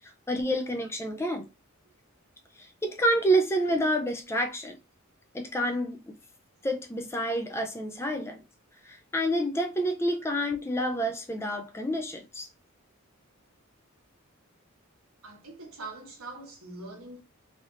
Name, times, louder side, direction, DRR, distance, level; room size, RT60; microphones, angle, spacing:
voice 1, 0.3-1.5 2.6-4.8 5.3-6.0 6.6-8.4 8.9-12.5, right 1 dB, 10° left, 0.3 m, -28 dB
voice 2, 15.2-17.2, right 2 dB, 85° right, 1.2 m, -43 dB
3.3 x 2.6 x 2.4 m
head